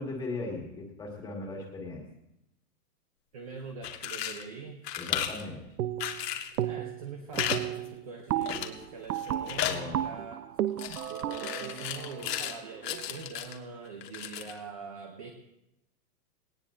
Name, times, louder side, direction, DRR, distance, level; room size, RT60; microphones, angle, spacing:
voice 1, 0.0-2.0 5.0-5.6 9.6-10.1, left 2 dB, 10° left, 0 dB, 1.7 m, -38 dB
voice 2, 3.3-4.8 6.6-10.5 11.1-15.3, right 4 dB, 25° right, 4 dB, 0.6 m, -43 dB
sound 1, 3.7-4.4 4.8-5.4 6.0-6.6 7.3-7.6 7.9-8.0 8.5-8.8 9.1-9.8 10.8-12.6 12.8-13.6 14.0-14.6, left 10 dB, 75° left, 1.6 m, -34 dB
sound 2, 5.8-6.2 6.6-7.1 7.4-13.2, right 12 dB, 65° right, 0.7 m, -34 dB
19.0 x 18.5 x 2.6 m, 0.86 s
supercardioid pair, 175°, 49 cm